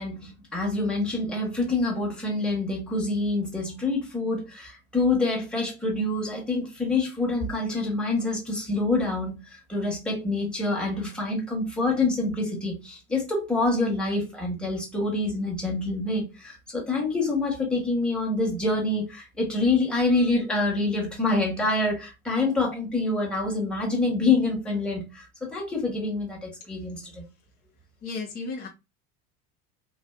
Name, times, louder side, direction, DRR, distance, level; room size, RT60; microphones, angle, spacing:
voice 1, 0.0-25.2 25.5-27.2, left 2 dB, ahead, 1.1 m, -26 dB
voice 2, 28.0-28.7, left 3 dB, 20° left, 0.5 m, -33 dB
3.1 x 2.4 x 2.3 m
figure-of-eight pair, 75°, 47 cm